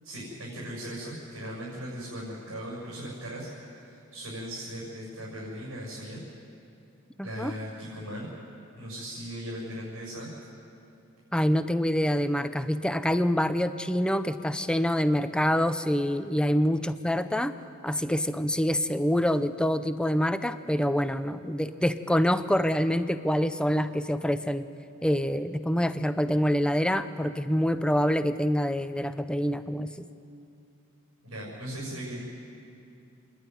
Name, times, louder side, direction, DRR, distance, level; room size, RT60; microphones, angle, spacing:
voice 1, 0.0-6.2 7.2-8.3 8.8-10.3 31.2-32.2, equal, 80° right, -5 dB, 6.6 m, -38 dB
voice 2, 7.2-7.5 11.3-17.5 17.8-24.7 25.0-30.1, equal, 5° left, 11 dB, 0.6 m, -26 dB
28.0 x 11.0 x 9.6 m, 2.7 s
head